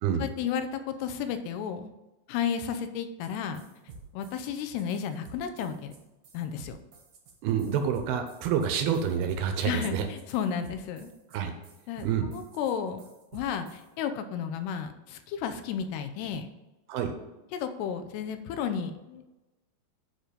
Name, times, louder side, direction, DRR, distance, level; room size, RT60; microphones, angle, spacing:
voice 1, 0.2-1.9 2.3-3.6 4.1-5.9 6.3-6.8 9.6-11.1 11.9-13.0 13.3-16.5 17.5-19.2, left 7 dB, 85° left, 9 dB, 2.8 m, -33 dB
sound 1, 3.2-3.3 3.5-13.9, right 4 dB, 60° right, 1.8 m, -50 dB
voice 2, 7.4-10.1 11.3-11.5 12.0-12.3 16.9-17.1, right 8 dB, 80° right, 6 dB, 2.5 m, -28 dB
9.1 x 4.6 x 5.0 m, 1.1 s
omnidirectional pair, 4.7 m